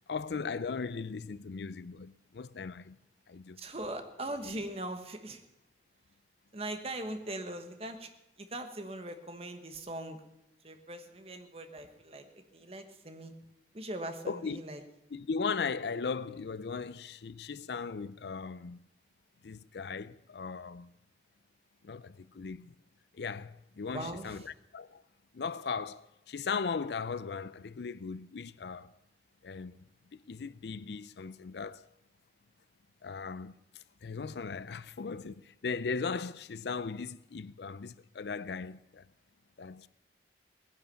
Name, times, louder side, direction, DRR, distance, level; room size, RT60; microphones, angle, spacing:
voice 1, 0.1-3.0 3.3-3.6 14.3-14.6 15.1-18.9 19.4-20.9 21.8-22.7 23.1-25.0 25.3-28.9 29.4-29.8 30.1-31.9 33.0-33.6 34.0-39.0 39.6-39.9, left 5 dB, 70° left, 0.5 m, -38 dB
voice 2, 3.6-5.4 6.5-8.1 8.4-10.2 10.6-13.3 13.7-14.8 23.9-24.5, right 1 dB, 35° right, 1.4 m, -40 dB
18.5 x 10.5 x 7.0 m
head